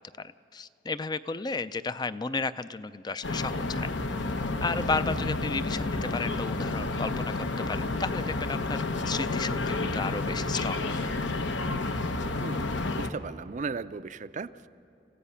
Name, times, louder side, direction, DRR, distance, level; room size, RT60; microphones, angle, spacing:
voice 1, 0.2-3.9 4.6-11.1, left 4 dB, 20° left, 14 dB, 0.4 m, -33 dB
sound 1, 3.2-13.1, left 2 dB, 70° left, 1.0 m, -30 dB
voice 2, 12.4-12.7 13.0-14.7, right 4 dB, 40° right, 14 dB, 0.4 m, -36 dB
29.0 x 16.0 x 5.6 m, 2.9 s
head